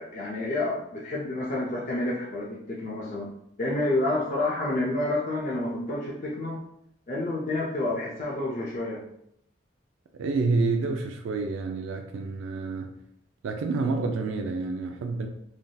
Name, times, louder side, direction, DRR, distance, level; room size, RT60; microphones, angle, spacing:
voice 1, 0.0-3.3 3.6-6.6 7.1-9.0, left 2 dB, 40° left, -4 dB, 0.5 m, -29 dB
voice 2, 10.1-12.9 13.4-15.3, right 3 dB, 80° right, 4 dB, 0.3 m, -28 dB
3.3 x 2.6 x 2.2 m, 0.74 s
head